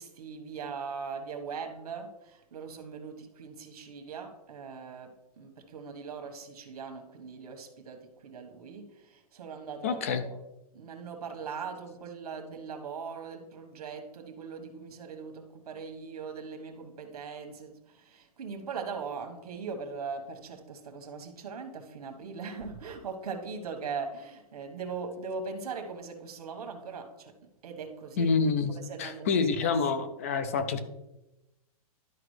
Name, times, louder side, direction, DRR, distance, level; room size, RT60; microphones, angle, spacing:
voice 1, 0.0-10.4 10.7-28.3 28.7-29.7, right 5 dB, 80° right, 1.3 m, -40 dB
voice 2, 9.8-10.2 28.2-30.8, left 5 dB, 25° left, 0.4 m, -27 dB
12.0 x 4.8 x 3.2 m
hypercardioid pair, 180°, 19 cm